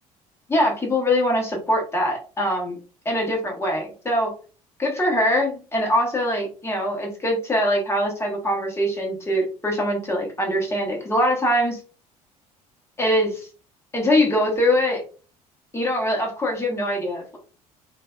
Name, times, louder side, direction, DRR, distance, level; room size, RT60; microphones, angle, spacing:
voice 1, 0.5-2.8 3.1-4.3 4.8-11.8 13.0-13.5 13.9-15.0 15.7-17.4, equal, 15° left, 0 dB, 1.1 m, -23 dB
2.5 x 2.3 x 2.3 m, 0.37 s
figure-of-eight pair, 55°, 19 cm